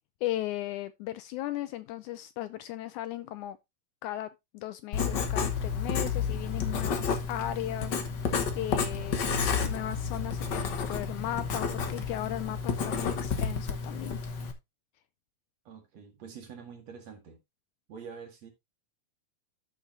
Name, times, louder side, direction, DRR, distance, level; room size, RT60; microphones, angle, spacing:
voice 1, 0.2-3.6 4.0-4.3 4.5-9.3 9.6-14.2, left 14 dB, 80° left, 1.8 m, -36 dB
Writing, 4.9-14.5, left 6 dB, 60° left, 1.1 m, -31 dB
voice 2, 15.6-17.4 17.9-18.5, right 6 dB, 55° right, 3.1 m, -46 dB
13.5 x 5.6 x 2.6 m
omnidirectional pair, 3.8 m